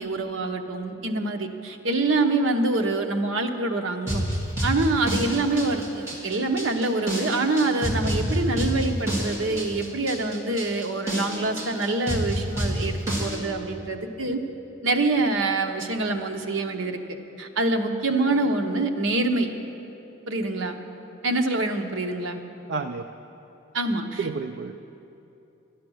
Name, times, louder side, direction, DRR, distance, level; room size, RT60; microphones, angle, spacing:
voice 1, 0.0-4.3 4.6-14.4 14.8-17.0 17.4-19.5 20.3-20.8 21.2-22.4 23.7-24.3, right 2 dB, 75° right, 4 dB, 0.9 m, -25 dB
sound 1, 4.1-13.4, right 1 dB, 15° right, 1.9 m, -28 dB
voice 2, 22.7-23.0 24.2-24.7, right 4 dB, 60° right, 7 dB, 0.4 m, -30 dB
12.0 x 10.5 x 6.3 m, 2.9 s
head